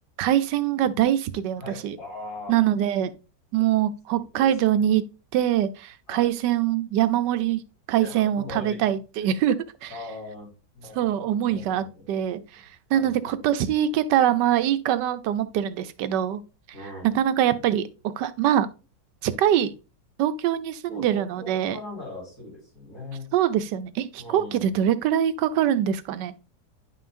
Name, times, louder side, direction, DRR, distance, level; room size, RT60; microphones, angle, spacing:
voice 1, 0.2-2.0 2.5-3.1 3.5-5.0 5.3-7.6 7.9-9.5 9.8-9.9 11.0-12.6 12.9-16.4 17.1-17.9 18.2-18.7 19.2-19.7 20.2-21.8 23.3-26.3, right 11 dB, 80° right, 1.3 m, -23 dB
voice 2, 1.6-2.6 4.1-4.7 6.1-6.3 7.9-9.3 9.9-10.5 10.7-12.0 12.9-13.5 16.7-17.1 20.9-23.3 24.2-24.7, left 2 dB, 60° left, 4.5 m, -40 dB
9.9 x 5.7 x 2.5 m
omnidirectional pair, 1.9 m